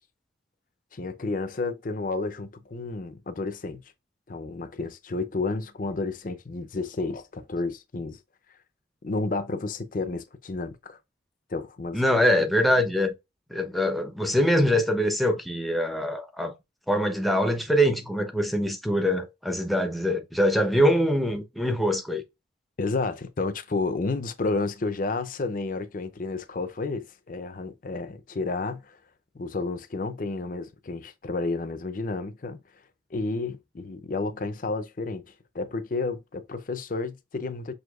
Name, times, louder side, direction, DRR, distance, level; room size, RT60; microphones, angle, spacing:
voice 1, 0.9-3.8 4.3-8.2 9.0-11.0 11.5-12.0 22.8-29.0 29.3-32.6 33.1-35.2 35.5-37.7, left 3 dB, 45° left, 0.5 m, -31 dB
voice 2, 11.9-13.1 13.5-16.5 16.9-22.2, equal, ahead, 0.6 m, -23 dB
6.3 x 2.7 x 2.3 m
head